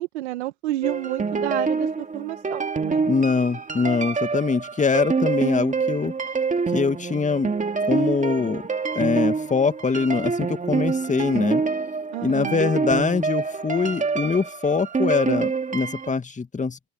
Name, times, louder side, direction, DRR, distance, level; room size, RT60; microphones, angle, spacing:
voice 1, 0.0-3.1 12.1-12.7, right 16 dB, 85° right, 1.6 m, -30 dB
sound 1, 0.8-16.1, right 4 dB, 25° right, 2.1 m, -26 dB
voice 2, 3.1-6.1 6.7-7.5 7.9-8.6 8.9-11.6 12.2-16.9, left 4 dB, 20° left, 2.1 m, -23 dB
open air
hypercardioid pair, 75°, 33 cm